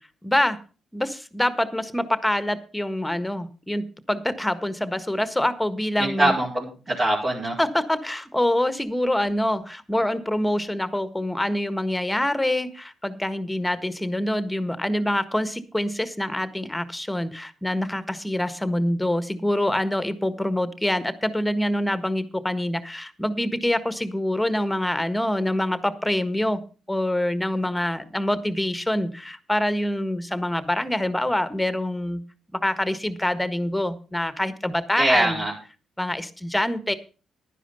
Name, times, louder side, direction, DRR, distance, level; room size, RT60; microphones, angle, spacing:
voice 1, 0.2-0.6 0.9-6.3 7.6-26.6 26.9-32.2 32.5-35.4 36.0-36.9, left 1 dB, 10° left, 12 dB, 1.5 m, -25 dB
voice 2, 6.0-7.5 35.0-35.5, right 1 dB, 45° right, -5 dB, 5.0 m, -22 dB
11.5 x 10.0 x 5.5 m, 0.35 s
supercardioid pair, 55°, 0 cm